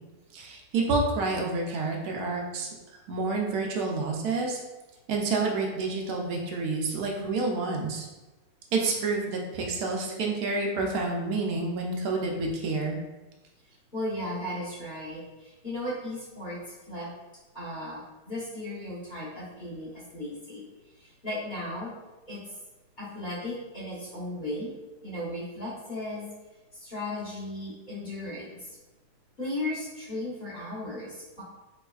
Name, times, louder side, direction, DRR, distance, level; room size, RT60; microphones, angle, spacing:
voice 1, 0.3-2.7 3.1-4.6 5.1-8.1 8.7-13.0, right 3 dB, 80° right, 0 dB, 1.1 m, -29 dB
voice 2, 13.6-17.1 17.5-21.9 22.3-22.4 23.0-24.7 25.0-26.2 26.7-28.8 29.4-31.4, left 1 dB, 35° left, -8 dB, 1.0 m, -36 dB
3.4 x 3.1 x 2.3 m, 1.1 s
omnidirectional pair, 1.6 m